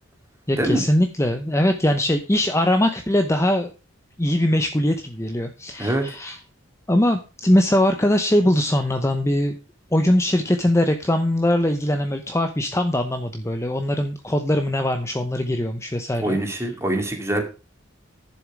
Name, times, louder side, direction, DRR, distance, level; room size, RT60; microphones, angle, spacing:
voice 1, 0.5-3.7 4.2-6.4 6.9-9.6 9.9-16.4, left 1 dB, 15° left, 6 dB, 0.8 m, -21 dB
voice 2, 16.2-17.4, right 1 dB, 15° right, 3 dB, 2.5 m, -23 dB
10.5 x 7.2 x 4.9 m, 0.32 s
head